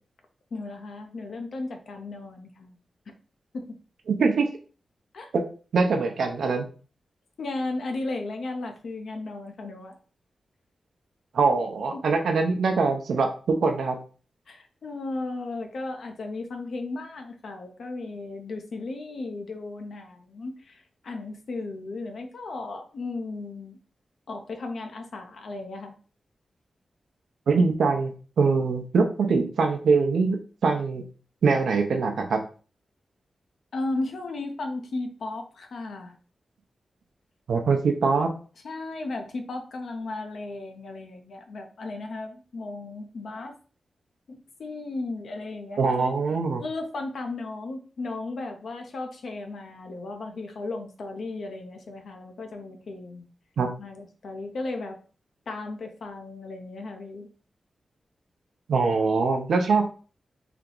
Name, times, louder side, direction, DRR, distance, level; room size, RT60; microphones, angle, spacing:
voice 1, 0.5-2.7 3.1-3.2 3.5-3.7 5.1-5.3 7.4-10.0 11.9-12.0 14.5-23.8 24.3-25.9 33.7-36.2 38.6-43.5 44.3-46.1 46.6-53.3 53.8-55.0 55.5-57.3, left 2 dB, 70° left, 4 dB, 0.6 m, -35 dB
voice 2, 4.1-4.5 5.3-5.4 5.7-6.7 11.3-14.0 27.5-31.1 31.4-32.4 37.5-38.3 45.8-46.6 53.6-53.7 58.7-59.9, right 4 dB, 85° right, 4 dB, 0.6 m, -23 dB
3.4 x 2.9 x 3.8 m, 0.38 s
wide cardioid pair, 135°, 0 cm